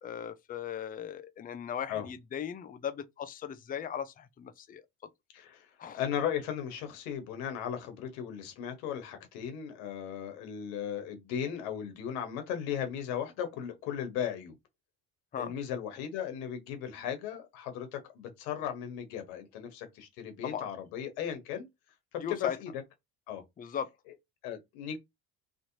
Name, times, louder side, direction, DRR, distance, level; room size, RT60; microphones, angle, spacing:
voice 1, 0.0-4.8 5.8-6.0 15.3-15.5 20.4-20.7 22.2-22.6 23.6-23.9, left 8 dB, 20° left, 0.4 m, -38 dB
voice 2, 5.3-5.7 5.9-14.5 15.3-21.6 22.1-22.8 23.3-23.4 24.4-25.0, left 9 dB, 85° left, 1.2 m, -36 dB
3.1 x 2.8 x 2.6 m
supercardioid pair, 85°, 43 cm